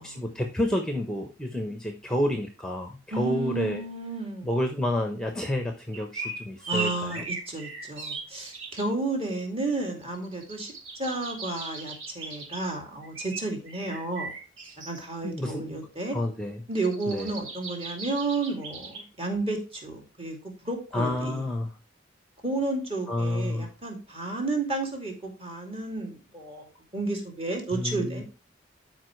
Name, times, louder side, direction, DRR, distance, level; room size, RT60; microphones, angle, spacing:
voice 1, 0.0-3.8 4.4-7.2 15.2-15.8 16.1-16.6 17.1-17.3 20.9-21.7 23.1-23.7 27.7-28.2, left 1 dB, 5° left, 4 dB, 0.9 m, -29 dB
voice 2, 3.1-4.5 6.7-10.7 11.0-14.4 14.8-16.2 16.7-20.4 20.6-21.4 22.4-26.7 26.9-28.2, right 3 dB, 30° right, 2 dB, 2.6 m, -32 dB
sound 1, 5.9-8.9 10.0-12.6 13.0-15.0 16.7-19.0, right 3 dB, 80° right, 2.9 m, -38 dB
12.5 x 4.7 x 3.2 m, 0.33 s
head